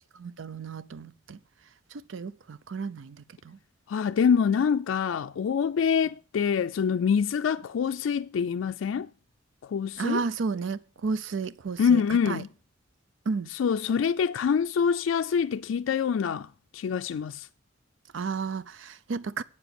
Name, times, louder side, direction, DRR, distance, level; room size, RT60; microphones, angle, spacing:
voice 1, 0.2-1.4 1.9-3.6 10.0-12.0 12.3-12.4 13.3-13.5 18.1-19.4, right 4 dB, 75° right, 0.5 m, -32 dB
voice 2, 3.9-9.1 9.6-10.2 11.8-12.5 13.5-16.5 16.7-17.5, left 7 dB, 85° left, 0.3 m, -25 dB
8.5 x 7.0 x 5.8 m
head